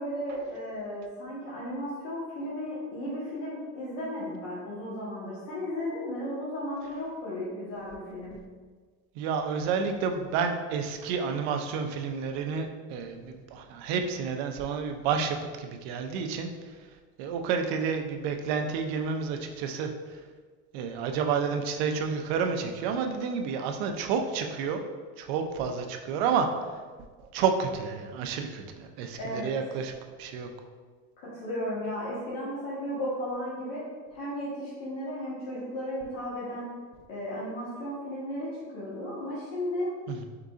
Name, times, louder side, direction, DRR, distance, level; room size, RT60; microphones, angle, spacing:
voice 1, 0.0-8.4 29.2-29.5 31.2-33.8 34.1-36.7 37.1-39.9, equal, 75° left, -8 dB, 1.2 m, -35 dB
voice 2, 9.2-16.5 17.2-20.2 20.7-24.8 25.2-26.5 27.3-29.9 30.2-30.5 40.1-40.2, right 6 dB, 65° right, 5 dB, 0.5 m, -30 dB
3.8 x 3.7 x 2.4 m, 1.5 s
cardioid pair, 165°, 33 cm